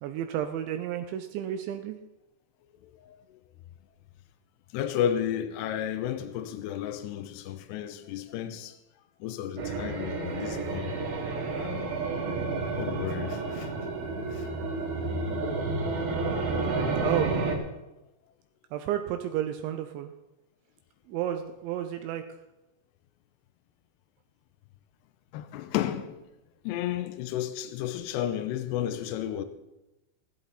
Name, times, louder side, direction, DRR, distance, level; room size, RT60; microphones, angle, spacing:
voice 1, 0.0-2.0 17.0-17.3 18.7-20.1 21.1-22.2, right 11 dB, 80° right, 2.8 m, -31 dB
voice 2, 2.8-3.4 4.7-8.8 9.2-11.0 11.5-11.9 12.7-13.7 14.3-14.5 16.7-16.8 25.3-26.2 26.6-29.4, left 10 dB, 80° left, 2.5 m, -33 dB
sound 1, 9.6-17.6, right 3 dB, 60° right, 3.4 m, -30 dB
16.5 x 12.5 x 4.1 m
omnidirectional pair, 5.7 m